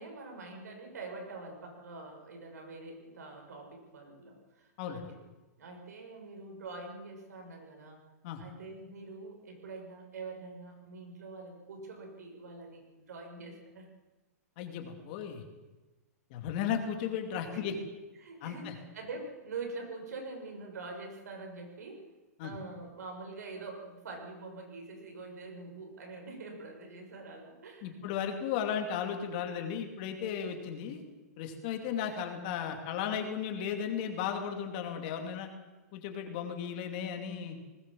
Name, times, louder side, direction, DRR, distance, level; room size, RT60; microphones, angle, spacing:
voice 1, 0.0-5.0 5.6-8.0 8.4-13.9 17.5-17.8 18.2-22.0 22.4-28.0 32.1-32.4 33.1-33.2, right 3 dB, 80° right, 2 dB, 6.7 m, -45 dB
voice 2, 14.6-15.4 16.3-17.7 18.4-18.7 22.4-22.5 27.8-31.0 31.4-35.5 35.9-37.6, left 8 dB, 30° left, 5 dB, 2.6 m, -35 dB
20.0 x 18.0 x 7.6 m, 1.2 s
hypercardioid pair, 175°, 9 cm